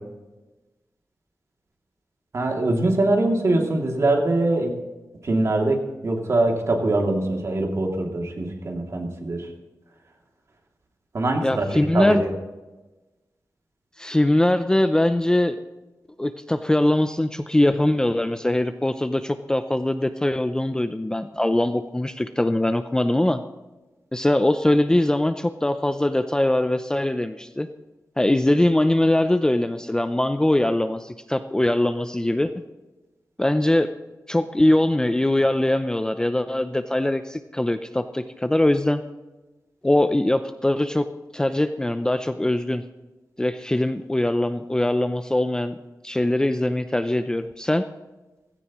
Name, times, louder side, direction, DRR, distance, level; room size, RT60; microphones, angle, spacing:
voice 1, 2.3-4.7 5.2-9.5 11.1-12.3, right 2 dB, 45° right, 1 dB, 2.7 m, -23 dB
voice 2, 11.4-12.2 14.0-15.6 16.2-23.4 24.1-27.7 28.2-32.5 33.4-33.9 34.3-39.0 39.8-41.1 41.3-42.8 43.4-45.7 46.0-47.8, left 1 dB, 10° left, 9 dB, 0.5 m, -22 dB
17.0 x 16.0 x 3.1 m, 1.1 s
wide cardioid pair, 150°, 7 cm